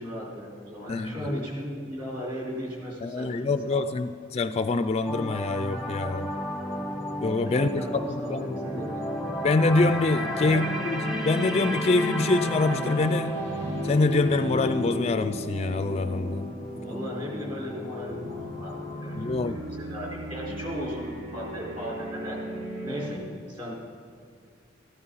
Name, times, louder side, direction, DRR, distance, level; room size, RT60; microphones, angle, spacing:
voice 1, 0.0-3.9 7.4-9.0 10.4-10.6 16.8-18.7 19.0-22.4 22.8-23.7, equal, 25° right, -3 dB, 4.3 m, -37 dB
voice 2, 0.9-1.4 3.0-6.3 7.2-7.8 8.1-8.5 8.7-8.8 9.4-13.4 13.8-16.5 19.2-19.6, left 3 dB, 35° left, 11 dB, 0.4 m, -25 dB
sound 1, 5.1-19.2 19.5-19.7, left 1 dB, ahead, 1.0 m, -34 dB
sound 2, 8.6-23.2, equal, 75° right, 2.6 m, -37 dB
14.5 x 11.0 x 5.5 m, 2.4 s
head